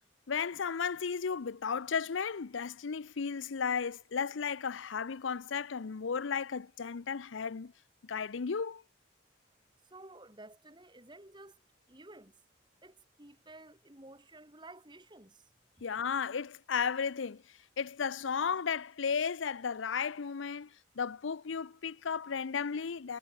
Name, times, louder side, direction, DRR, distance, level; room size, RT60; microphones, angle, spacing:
voice 1, 0.3-7.7 8.0-8.8 15.8-23.2, left 6 dB, 85° left, 0.6 m, -34 dB
voice 2, 9.9-11.6 11.9-12.3 12.8-15.4, right 2 dB, 25° right, 3.9 m, -53 dB
head